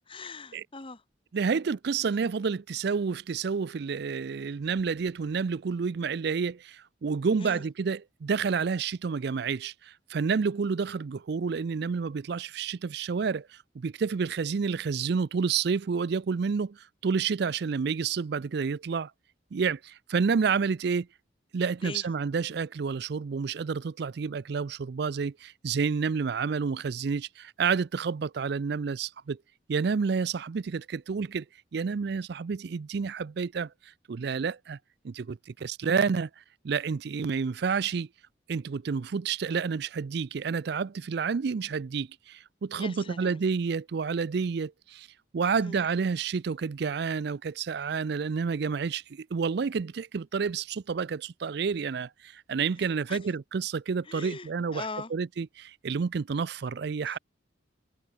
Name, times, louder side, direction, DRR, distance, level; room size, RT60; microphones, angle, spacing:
voice 1, 0.1-1.0 7.4-7.6 21.8-22.0 42.7-43.4 45.5-45.8 52.8-53.2 54.1-55.1 57.1-57.2, left 3 dB, 30° left, 1.4 m, -41 dB
voice 2, 1.3-19.1 19.5-21.1 21.5-29.4 29.7-31.4 31.7-34.8 35.0-38.1 38.5-45.1 45.3-57.2, right 5 dB, 60° right, 0.4 m, -29 dB
head